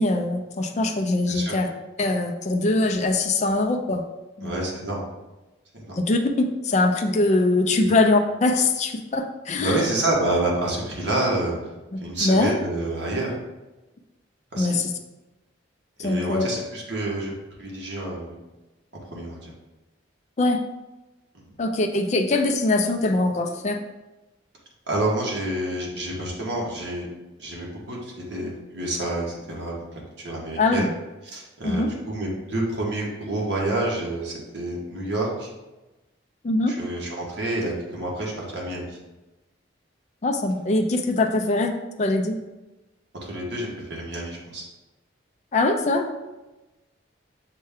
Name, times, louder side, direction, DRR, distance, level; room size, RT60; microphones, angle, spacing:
voice 1, 0.0-1.7 2.0-4.0 4.4-4.6 6.0-9.8 11.9-12.6 14.6-14.9 16.0-16.5 20.4-20.6 21.6-23.8 30.6-30.9 31.6-31.9 36.4-36.7 40.2-42.4 45.5-46.1, left 2 dB, 35° left, 4 dB, 0.4 m, -22 dB
voice 2, 4.4-5.0 5.7-6.0 7.8-7.9 9.6-11.5 12.0-13.3 14.5-14.7 16.0-17.3 17.6-18.3 19.1-19.5 21.3-21.5 24.9-27.1 27.4-29.8 30.2-30.9 31.3-35.5 36.7-39.0 43.3-44.7, right 1 dB, 65° right, -3 dB, 1.1 m, -28 dB
6.5 x 2.2 x 3.5 m, 1.1 s
head